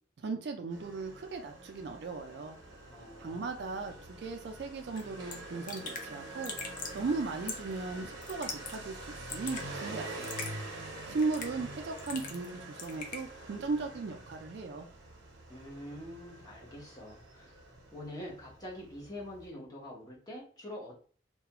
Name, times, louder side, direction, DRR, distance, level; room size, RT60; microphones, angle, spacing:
voice 1, 0.2-2.6 3.2-6.5 6.9-10.4 11.1-14.9, right 4 dB, 55° right, 6 dB, 0.3 m, -37 dB
Motorcycle, 0.7-19.5, right 2 dB, 85° right, 0.7 m, -46 dB
voice 2, 2.9-3.6 15.5-17.6 17.9-21.0, left 1 dB, 20° left, -5 dB, 0.8 m, -45 dB
Raindrop / Drip, 5.0-5.1 5.3-5.4 5.7-6.1 6.4-7.0 7.5-7.8 8.2-8.8 9.0-9.6 10.2-10.5 11.2-11.6 12.0-12.5 12.8-13.2, left 5 dB, 45° left, 0.4 m, -40 dB
2.3 x 2.2 x 2.8 m, 0.42 s
head